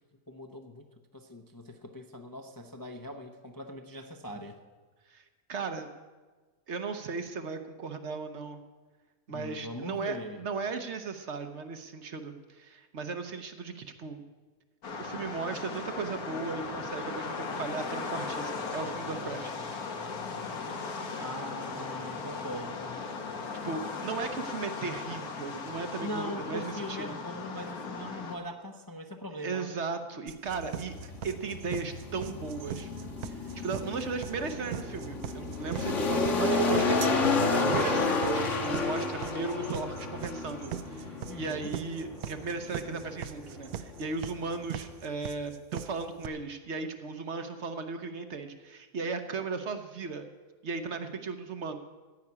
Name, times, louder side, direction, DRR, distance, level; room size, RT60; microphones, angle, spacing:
voice 1, 0.3-0.8 1.1-4.6 9.3-10.4 21.2-23.0 26.0-29.7 41.3-41.7, left 1 dB, 25° left, 4 dB, 0.5 m, -41 dB
voice 2, 5.5-5.9 6.7-8.6 9.3-14.2 15.0-19.5 23.6-27.0 29.4-32.9 33.2-50.3 50.6-51.8, right 4 dB, 55° right, 8 dB, 1.0 m, -36 dB
sound 1, 14.8-28.4, left 4 dB, 75° left, 1.7 m, -37 dB
sound 2, 30.3-46.3, right 11 dB, 80° right, 1.1 m, -39 dB
sound 3, 30.5-44.9, left 3 dB, 55° left, 1.6 m, -31 dB
14.5 x 5.9 x 9.6 m, 1.4 s
omnidirectional pair, 1.6 m